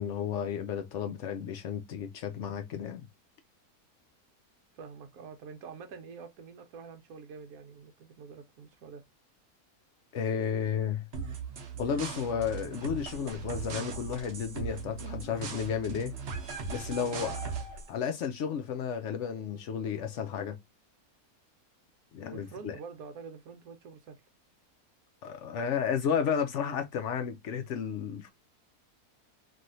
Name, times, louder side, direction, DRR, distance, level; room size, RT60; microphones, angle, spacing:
voice 1, 0.0-3.1 10.1-11.1 11.8-16.1 16.7-17.5 17.9-20.6 22.1-22.8 25.2-28.3, left 7 dB, 70° left, 0.7 m, -32 dB
voice 2, 4.7-9.0 22.3-24.2, right 5 dB, 70° right, 1.2 m, -46 dB
sound 1, 11.1-17.9, right 5 dB, 50° right, 0.9 m, -39 dB
3.1 x 2.6 x 2.6 m
omnidirectional pair, 1.7 m